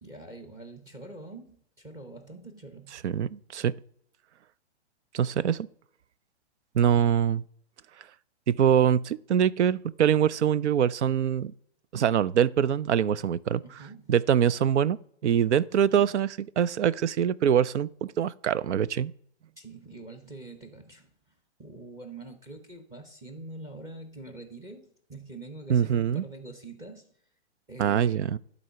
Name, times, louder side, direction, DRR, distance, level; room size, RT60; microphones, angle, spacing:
voice 1, 0.0-3.0 13.6-14.1 15.8-16.1 19.6-21.1 21.6-27.1 27.7-28.3, right 2 dB, 10° right, 0.9 m, -45 dB
voice 2, 3.0-3.7 5.1-5.7 6.7-7.4 8.5-11.5 11.9-13.6 14.1-15.0 15.2-16.3 16.6-19.1 25.7-26.2 27.8-28.4, right 9 dB, 90° right, 0.6 m, -24 dB
11.0 x 4.1 x 5.7 m
hypercardioid pair, 160°, 34 cm